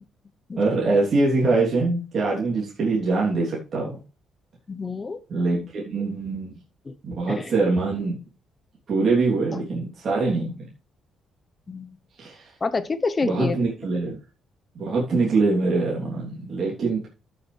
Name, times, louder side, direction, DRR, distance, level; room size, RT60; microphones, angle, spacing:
voice 1, 0.6-4.0 5.3-6.5 7.0-8.2 8.9-10.7 12.2-12.5 13.2-14.2 14.7-17.1, right 3 dB, 55° right, -4 dB, 3.2 m, -23 dB
voice 2, 4.7-5.2 6.9-7.0 7.3-7.5 11.7-12.0 12.6-13.6, left 4 dB, 30° left, 12 dB, 1.0 m, -27 dB
13.5 x 6.9 x 3.4 m, 0.34 s
cardioid pair, 90°, 0 cm